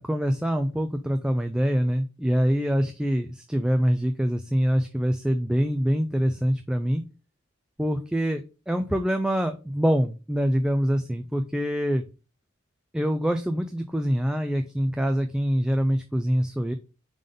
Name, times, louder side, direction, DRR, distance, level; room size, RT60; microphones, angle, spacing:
voice 1, 0.0-7.0 7.8-12.0 12.9-16.7, equal, 5° right, 6 dB, 0.3 m, -25 dB
5.2 x 3.8 x 5.2 m, 0.32 s
head